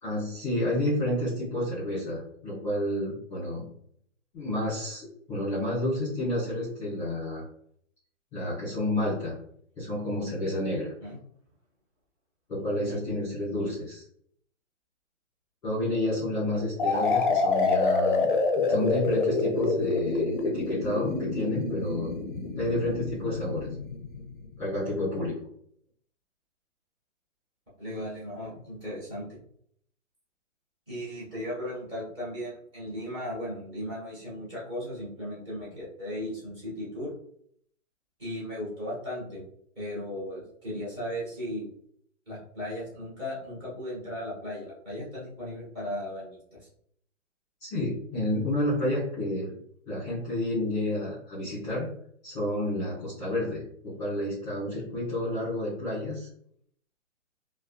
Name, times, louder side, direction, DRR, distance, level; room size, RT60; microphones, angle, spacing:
voice 1, 0.0-3.6 4.3-7.4 8.3-9.4 9.8-10.9 12.5-14.0 15.6-18.3 18.5-22.1 22.6-23.7 24.6-25.4 47.6-49.5 49.9-51.9 52.2-56.3, left 1 dB, 10° left, -12 dB, 1.2 m, -30 dB
sound 1, 16.8-24.5, left 4 dB, 40° left, 0.4 m, -27 dB
voice 2, 27.8-29.4 30.9-37.1 38.2-39.4 39.7-41.7 42.3-46.7, left 1 dB, 20° right, -9 dB, 1.3 m, -36 dB
3.4 x 2.3 x 2.3 m, 0.66 s
hypercardioid pair, 165°, 38 cm